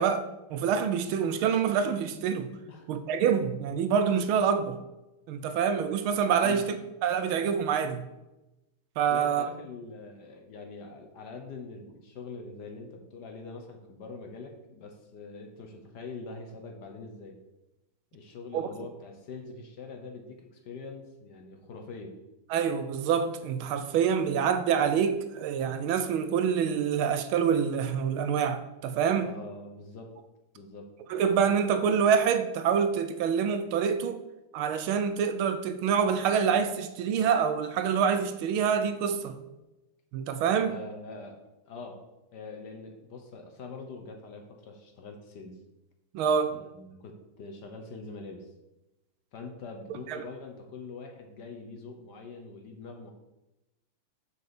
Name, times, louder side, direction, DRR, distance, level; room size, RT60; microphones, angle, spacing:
voice 1, 0.0-2.5 2.9-4.8 5.3-8.0 9.0-9.5 18.5-18.7 22.5-29.3 31.1-34.2 34.5-39.4 40.1-40.7 46.1-46.6 50.1-50.2, right 7 dB, 80° right, 1.4 m, -26 dB
voice 2, 9.1-17.4 18.1-22.2 29.2-30.1 30.5-30.9 40.6-41.4 41.7-42.0 42.3-45.6 46.5-48.5 49.3-53.1, left 4 dB, 55° left, 1.4 m, -44 dB
6.7 x 4.9 x 6.9 m
omnidirectional pair, 2.4 m